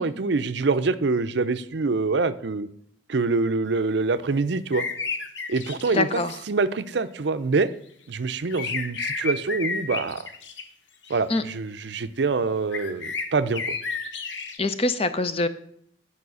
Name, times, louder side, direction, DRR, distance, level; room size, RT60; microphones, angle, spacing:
voice 1, 0.0-2.7 3.1-4.8 5.5-6.2 6.5-7.7 8.1-10.2 11.1-13.6, right 4 dB, 60° right, 12 dB, 0.5 m, -25 dB
sound 1, 4.7-6.4 8.5-10.6 11.0-11.2 12.7-14.6, left 4 dB, 70° left, 1.1 m, -32 dB
voice 2, 5.9-6.3 11.3-11.4 14.6-15.5, left 2 dB, 30° left, 11 dB, 0.6 m, -24 dB
9.6 x 5.5 x 6.2 m, 0.67 s
head